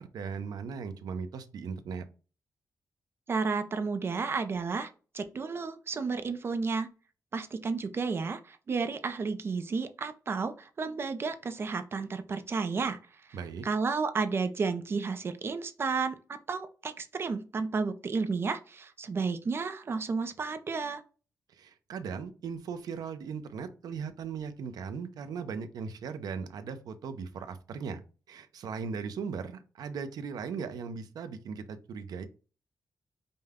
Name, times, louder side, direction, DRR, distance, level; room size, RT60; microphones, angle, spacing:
voice 1, 0.0-2.1 13.3-13.7 21.5-28.0 28.3-32.3, right 6 dB, 85° right, 9 dB, 0.6 m, -38 dB
voice 2, 3.3-4.9 5.1-6.9 7.3-13.0 13.6-16.2 16.5-21.0, right 4 dB, 40° right, 10 dB, 0.5 m, -32 dB
5.3 x 2.2 x 3.5 m, 0.36 s
wide cardioid pair, 150°, 6 cm